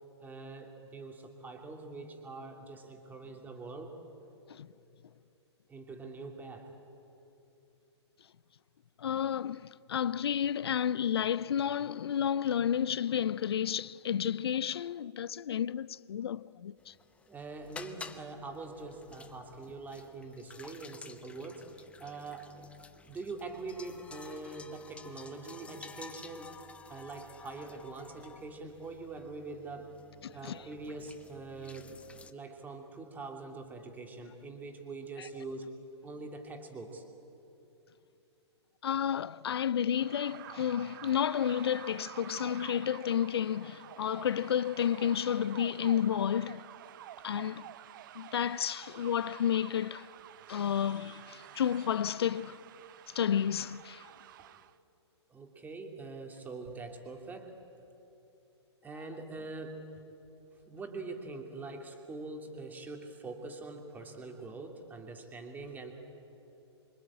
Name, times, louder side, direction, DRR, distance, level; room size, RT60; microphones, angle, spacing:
voice 1, 0.2-3.9 5.7-6.7 17.3-22.5 23.0-26.5 26.9-29.9 30.3-32.0 32.3-37.0 54.4-54.6 55.3-57.6 58.8-60.0 60.7-65.9, right 3 dB, 10° right, 2.9 m, -44 dB
voice 2, 9.0-16.9 30.2-30.6 35.2-35.3 38.8-46.6 47.2-47.7 48.1-50.1 50.5-52.6 53.1-54.1, left 9 dB, 60° left, 0.6 m, -31 dB
sound 1, 16.8-32.3, left 4 dB, 10° left, 0.9 m, -52 dB
sound 2, 39.9-54.7, right 12 dB, 45° right, 0.9 m, -50 dB
26.5 x 24.0 x 8.7 m
figure-of-eight pair, 120°, 15 cm